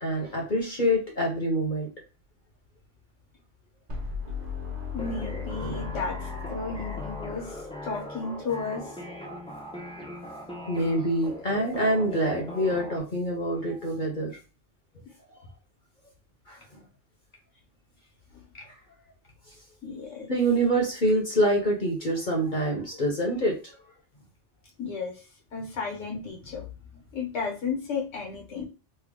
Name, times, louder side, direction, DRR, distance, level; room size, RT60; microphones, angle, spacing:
voice 1, 0.0-1.9 5.6-5.7 10.0-10.1 10.7-14.3 16.5-16.6 18.7-18.8 20.3-23.5, right 1 dB, 45° left, 0 dB, 0.9 m, -26 dB
sound 1, 3.9-7.9, left 6 dB, 35° right, 1.1 m, -36 dB
voice 2, 4.9-9.0 18.3-18.5 19.8-20.3 24.8-28.6, left 4 dB, 75° left, 0 dB, 1.4 m, -34 dB
sound 2, 5.0-13.0, equal, 5° left, 0.5 m, -40 dB
3.3 x 2.3 x 3.5 m, 0.32 s
omnidirectional pair, 1.3 m